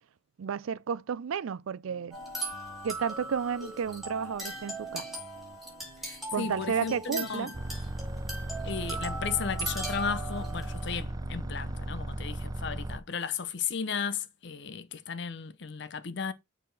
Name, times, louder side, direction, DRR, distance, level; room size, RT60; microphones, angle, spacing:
voice 1, 0.4-2.2 2.8-5.1 6.3-7.5, right 7 dB, 90° right, 0.4 m, -32 dB
sound 1, 1.9-12.5, equal, 40° right, 1.5 m, -53 dB
sound 2, 2.1-11.0, right 2 dB, ahead, 2.4 m, -39 dB
voice 2, 6.1-7.5 8.6-16.3, left 6 dB, 60° left, 0.6 m, -35 dB
sound 3, 7.5-13.0, right 1 dB, 20° right, 0.4 m, -36 dB
6.5 x 4.1 x 3.9 m
head